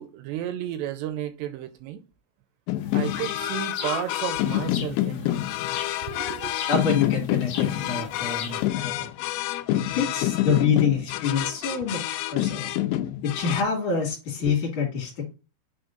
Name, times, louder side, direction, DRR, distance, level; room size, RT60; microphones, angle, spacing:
voice 1, 0.0-2.0 2.9-5.4 6.1-6.6 9.7-9.8 10.5-10.7 11.7-11.8 14.4-14.6, right 12 dB, 85° right, 2.6 m, -33 dB
sound 1, 2.7-13.6, left 14 dB, 85° left, 3.0 m, -28 dB
sound 2, 2.8-8.7, left 7 dB, 65° left, 2.6 m, -39 dB
voice 2, 6.7-9.1 9.9-12.7 13.2-15.4, left 6 dB, 50° left, 3.2 m, -26 dB
8.4 x 3.5 x 3.8 m
omnidirectional pair, 5.4 m